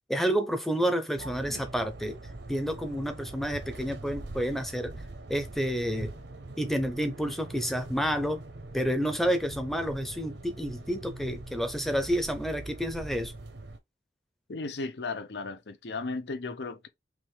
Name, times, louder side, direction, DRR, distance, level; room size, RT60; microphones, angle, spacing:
voice 1, 0.1-2.2 2.5-4.9 5.3-6.1 6.6-8.4 8.7-13.3, equal, ahead, 0.6 m, -29 dB
sound 1, 1.2-13.8, right 2 dB, 70° right, 0.8 m, -43 dB
voice 2, 14.5-16.9, left 3 dB, 65° left, 0.6 m, -35 dB
5.9 x 2.5 x 3.2 m
head